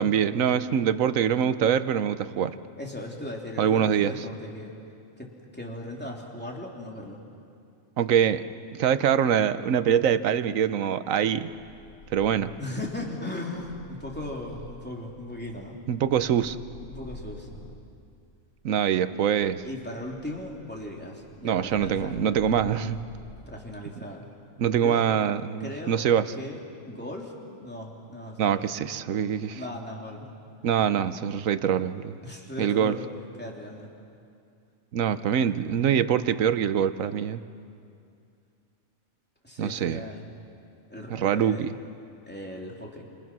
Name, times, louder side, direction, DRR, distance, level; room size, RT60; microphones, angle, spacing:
voice 1, 0.0-2.5 3.6-4.1 8.0-8.4 8.7-11.5 12.1-12.5 15.9-16.6 18.6-19.6 21.4-23.0 24.6-26.3 28.4-29.6 30.6-32.2 32.6-33.0 34.9-37.4 39.6-40.0 41.1-41.7, right 8 dB, 75° right, 12 dB, 1.2 m, -24 dB
voice 2, 2.8-4.7 5.2-7.2 12.6-15.8 16.9-17.5 19.6-22.2 23.5-24.3 24.8-25.1 25.6-26.0 26.4-28.7 29.5-30.3 32.2-33.0 33.4-33.9 39.4-40.3 40.9-41.7 42.2-43.0, left 1 dB, 5° left, -1 dB, 3.1 m, -37 dB
Purr, 11.6-17.9 18.6-23.8, left 1 dB, 85° left, 3.0 m, -48 dB
29.0 x 27.5 x 6.2 m, 2.4 s
omnidirectional pair, 1.4 m